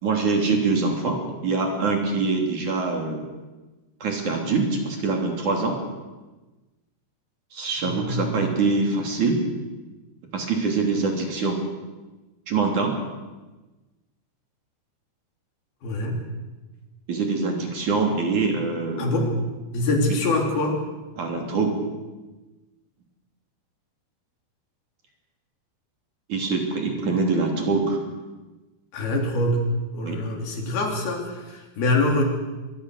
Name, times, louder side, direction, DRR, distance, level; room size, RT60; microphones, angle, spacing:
voice 1, 0.0-3.3 4.0-5.8 7.5-9.4 10.3-11.6 12.5-13.0 17.1-19.2 21.2-21.8 26.3-28.0 30.0-30.2, right 4 dB, 50° right, 2 dB, 4.4 m, -24 dB
voice 2, 7.8-8.3 15.8-16.2 19.0-19.4 19.7-20.8 28.9-32.2, left 2 dB, 70° left, 1 dB, 5.3 m, -24 dB
24.5 x 22.0 x 6.6 m, 1.2 s
omnidirectional pair, 4.6 m